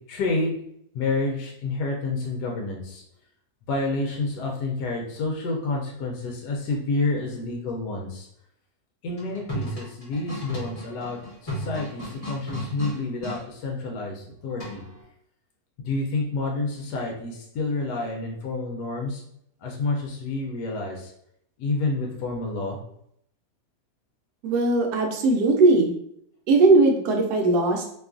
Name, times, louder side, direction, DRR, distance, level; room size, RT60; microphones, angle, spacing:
voice 1, 0.1-0.6 0.9-3.0 3.7-8.3 9.0-14.8 15.8-19.2 19.6-21.1 21.6-22.8, left 3 dB, 80° left, 0 dB, 1.1 m, -29 dB
sound 1, 9.1-13.4 14.6-15.0, right 1 dB, 25° left, 1.0 m, -35 dB
voice 2, 24.4-25.9 26.5-27.8, right 3 dB, 75° right, 2 dB, 1.1 m, -19 dB
3.0 x 2.3 x 2.4 m, 0.71 s
omnidirectional pair, 1.7 m